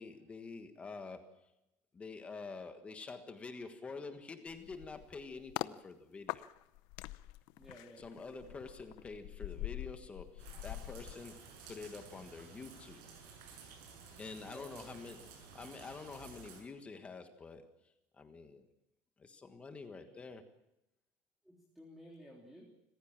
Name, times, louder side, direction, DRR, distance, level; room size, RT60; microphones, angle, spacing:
voice 1, 0.0-1.5 1.9-6.5 8.0-13.0 14.2-18.6 19.2-20.5, left 4 dB, 20° left, 7 dB, 1.4 m, -48 dB
sound 1, 4.5-5.8 6.3-11.9 12.2-12.4, left 19 dB, 70° left, 0.8 m, -44 dB
voice 2, 7.6-8.0 14.4-14.9 19.9-20.3 21.4-22.7, equal, 5° right, -2 dB, 3.2 m, -55 dB
sound 2, 10.4-16.6, right 5 dB, 80° right, 7.5 m, -54 dB
26.5 x 15.5 x 7.4 m, 0.83 s
cardioid pair, 160°, 7 cm